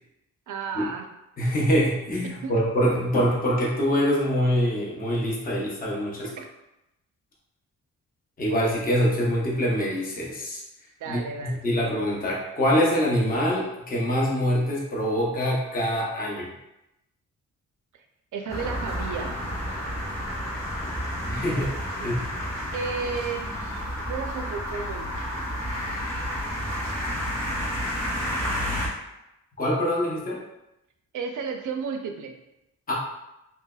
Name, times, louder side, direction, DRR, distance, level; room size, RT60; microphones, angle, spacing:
voice 1, 0.5-1.1 2.4-2.5 6.2-6.4 11.0-12.0 17.9-18.1 18.3-19.4 22.0-22.1 22.7-23.6 24.1-25.5 31.1-32.4, right 5 dB, 75° right, 5 dB, 0.5 m, -33 dB
voice 2, 1.4-6.3 8.4-10.6 11.1-16.5 21.3-21.7 22.0-22.2 29.6-30.4 32.9-33.0, equal, 30° left, -4 dB, 0.7 m, -24 dB
sound 1, 18.5-28.9, equal, 10° left, 1.1 m, -30 dB
3.2 x 2.9 x 2.2 m, 0.91 s
wide cardioid pair, 145°, 31 cm